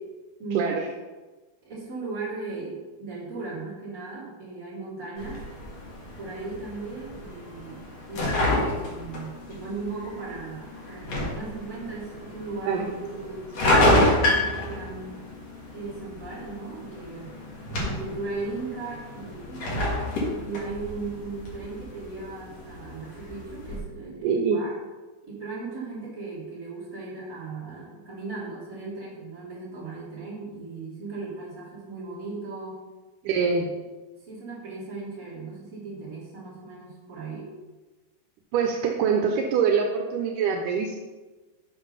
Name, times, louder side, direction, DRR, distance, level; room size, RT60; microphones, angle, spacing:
voice 1, 0.4-0.8 1.6-5.5 6.2-15.2 15.7-19.8 20.4-24.8 25.2-32.8 33.2-33.4 34.2-37.5, right 3 dB, 25° right, -7 dB, 2.9 m, -37 dB
sound 1, 5.2-23.8, left 1 dB, 50° left, 2.4 m, -29 dB
voice 2, 24.2-24.6 33.3-33.7 38.5-41.0, right 6 dB, 85° right, 2 dB, 1.8 m, -24 dB
7.2 x 5.9 x 5.6 m, 1.2 s
omnidirectional pair, 4.6 m